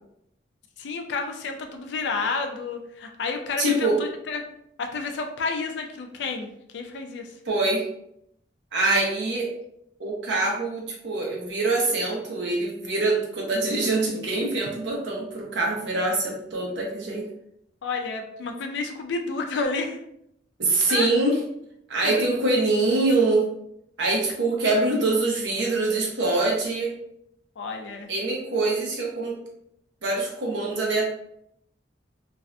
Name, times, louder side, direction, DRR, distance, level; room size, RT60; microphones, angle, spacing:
voice 1, 0.8-4.4 4.8-6.5 6.7-7.3 17.8-20.0 20.9-21.1 22.0-22.2 27.6-28.1, left 4 dB, 75° left, 4 dB, 0.4 m, -30 dB
voice 2, 3.6-4.0 7.5-7.9 8.7-9.5 10.0-17.3 20.6-21.4 21.9-23.5 24.0-26.9 28.1-29.4 30.0-31.1, right 2 dB, 75° right, -2 dB, 0.7 m, -24 dB
2.5 x 2.1 x 2.5 m, 0.76 s
head